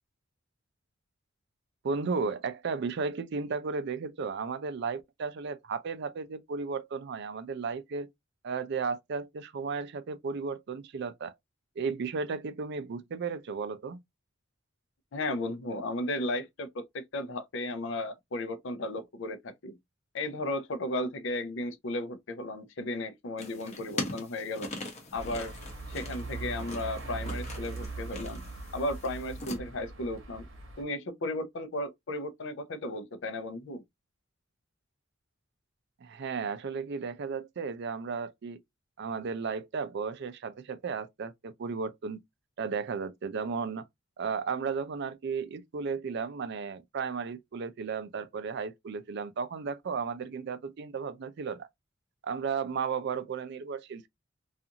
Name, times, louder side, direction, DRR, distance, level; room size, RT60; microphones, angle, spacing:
voice 1, 1.8-8.1 8.4-11.3 11.8-14.0 36.0-38.6 39.0-42.2 42.6-43.9 44.2-51.7 52.2-54.1, right 5 dB, 60° right, 0.4 m, -34 dB
voice 2, 15.1-19.7 20.1-24.7 25.1-25.5 25.9-28.5 28.7-30.5 30.8-33.8, left 1 dB, 65° left, 0.5 m, -35 dB
sound 1, 23.4-29.6, left 2 dB, 35° left, 0.8 m, -41 dB
sound 2, 25.1-30.8, right 3 dB, 85° right, 0.8 m, -40 dB
2.5 x 2.4 x 2.7 m
head